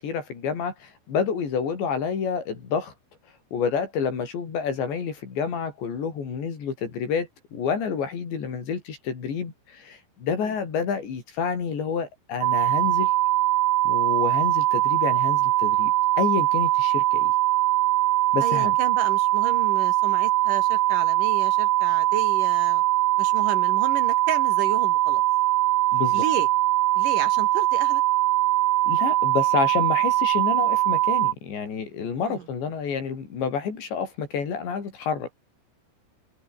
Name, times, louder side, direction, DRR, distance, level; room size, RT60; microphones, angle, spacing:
voice 1, 0.0-2.9 3.5-13.1 13.9-17.3 18.3-18.8 25.9-26.2 28.9-35.3, left 6 dB, 85° left, 7.2 m, -29 dB
sound 1, 12.4-31.3, right 16 dB, 80° right, 3.2 m, -22 dB
voice 2, 18.4-22.8 23.2-25.2 26.1-26.5 27.0-28.0 32.3-32.4, right 8 dB, 55° right, 3.3 m, -32 dB
omnidirectional pair, 5.0 m